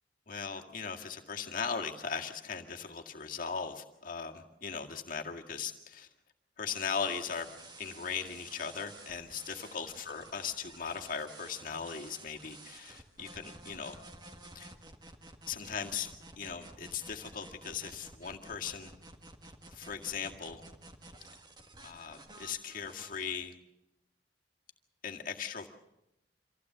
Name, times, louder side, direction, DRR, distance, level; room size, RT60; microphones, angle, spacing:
voice 1, 0.3-6.1 6.6-7.5 7.8-14.0 14.5-14.7 15.5-16.1 16.4-18.9 19.7-20.6 21.8-23.5 25.0-25.7, left 6 dB, 50° left, 3 dB, 2.0 m, -38 dB
sound 1, 6.7-23.3, right 2 dB, 25° right, 1.7 m, -52 dB
25.5 x 15.5 x 7.9 m, 0.87 s
head